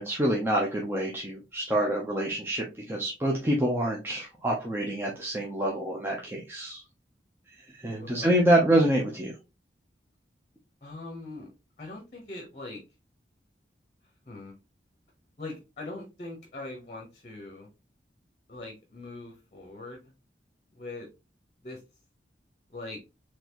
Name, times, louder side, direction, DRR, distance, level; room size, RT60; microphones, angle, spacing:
voice 1, 0.0-6.8 7.7-9.3, right 1 dB, 15° right, -2 dB, 0.7 m, -26 dB
voice 2, 8.0-8.3 10.8-11.5 11.8-12.8 14.3-14.5 15.4-17.7 18.5-20.1 20.7-21.1 21.6-21.8 22.7-23.0, left 2 dB, 40° left, 1 dB, 0.9 m, -41 dB
4.0 x 3.0 x 3.0 m, 0.27 s
head